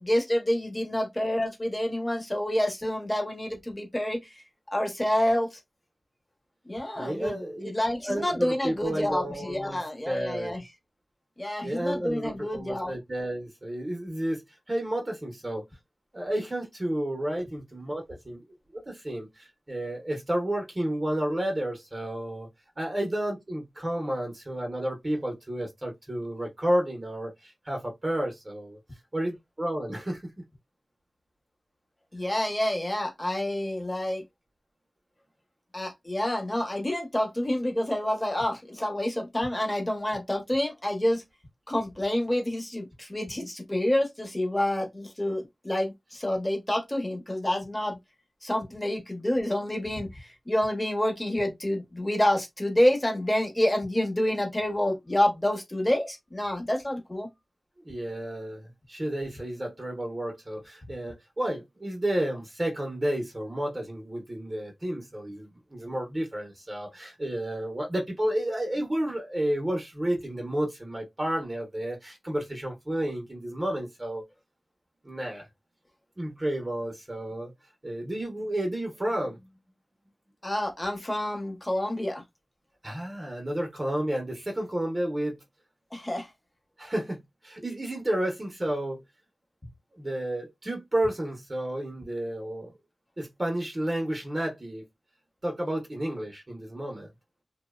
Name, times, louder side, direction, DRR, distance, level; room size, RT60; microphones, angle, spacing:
voice 1, 0.0-4.2 4.7-5.6 6.7-7.4 7.6-10.6 11.4-12.9 32.1-34.2 35.7-41.2 41.7-48.0 48.4-57.3 80.4-82.2 85.9-86.3, left 1 dB, 20° left, 0.9 m, -28 dB
voice 2, 7.0-7.7 8.0-9.8 10.1-10.6 11.6-15.6 16.1-18.4 18.7-22.5 22.8-28.8 29.1-30.2 57.8-74.2 75.0-75.5 76.2-77.5 77.8-79.5 82.8-85.4 86.8-89.0 89.9-92.7 93.2-94.8 95.4-97.1, right 1 dB, 25° right, 0.7 m, -31 dB
2.6 x 2.0 x 2.3 m
wide cardioid pair, 85°, 0 cm